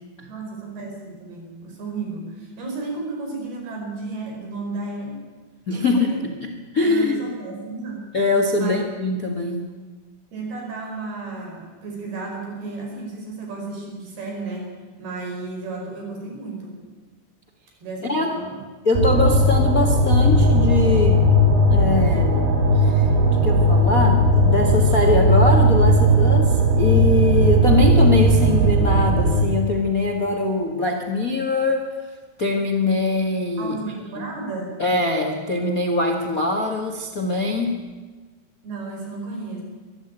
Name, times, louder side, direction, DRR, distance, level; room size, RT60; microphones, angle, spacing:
voice 1, 0.3-5.2 5.7-6.3 6.8-8.3 8.6-8.8 10.3-14.7 15.0-16.8 17.8-18.6 33.6-34.8 38.6-39.6, right 3 dB, 65° right, 1 dB, 6.9 m, -33 dB
voice 2, 5.7-6.1 6.4-7.2 8.1-9.6 18.0-18.3 18.8-21.2 21.7-22.4 22.7-23.1 23.4-31.9 32.4-33.8 34.2-34.3 34.8-37.8, left 3 dB, 75° left, 4 dB, 0.7 m, -22 dB
sound 1, 18.9-29.4, right 1 dB, 85° right, 5.3 m, -17 dB
22.5 x 13.5 x 9.0 m, 1.3 s
omnidirectional pair, 4.8 m